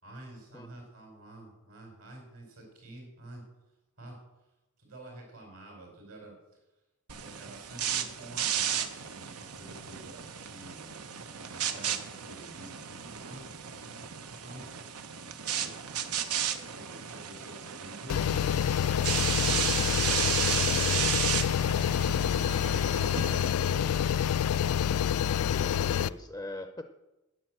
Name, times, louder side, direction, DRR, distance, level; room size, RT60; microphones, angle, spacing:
voice 1, 0.0-3.4 4.0-4.2 4.8-6.3 7.2-10.9 11.5-13.0 13.2-13.5 14.4-14.8 15.2-15.7 16.5-19.1 19.4-19.8 20.1-25.8, right 1 dB, 70° right, 1 dB, 4.6 m, -49 dB
sound 1, 7.1-23.5, right 9 dB, 85° right, 1.0 m, -34 dB
sound 2, 18.1-26.1, left 9 dB, 75° left, 0.3 m, -27 dB
voice 2, 25.5-26.8, left 1 dB, 10° left, 7 dB, 0.5 m, -41 dB
9.3 x 9.1 x 7.6 m, 1.0 s
head